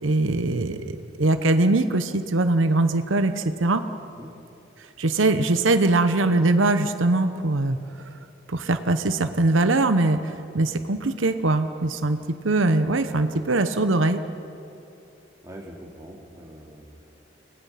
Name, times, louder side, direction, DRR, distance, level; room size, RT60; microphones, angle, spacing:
voice 1, 0.0-3.8 5.0-7.8 8.5-14.2, right 2 dB, 90° right, 9 dB, 0.9 m, -22 dB
voice 2, 15.4-17.0, equal, 15° right, -1 dB, 2.8 m, -43 dB
29.0 x 19.5 x 5.8 m, 2.7 s
head